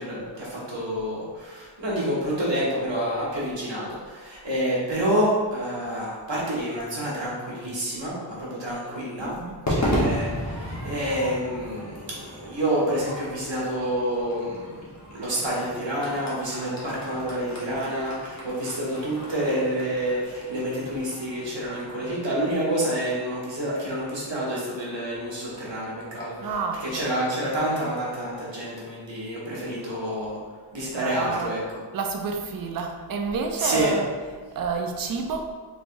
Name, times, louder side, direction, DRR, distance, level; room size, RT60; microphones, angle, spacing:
voice 1, 0.0-9.3 9.7-14.7 15.1-26.5 26.8-30.4 30.7-31.8 33.6-33.9, right 1 dB, 65° right, -6 dB, 1.3 m, -28 dB
voice 2, 9.2-9.6 26.4-27.1 30.9-31.5 31.9-34.1 34.5-35.5, right 4 dB, 50° right, 3 dB, 0.5 m, -29 dB
Crowd / Fireworks, 9.7-24.1, equal, 35° left, 1.1 m, -34 dB
3.3 x 3.2 x 2.6 m, 1.5 s
wide cardioid pair, 60°, 47 cm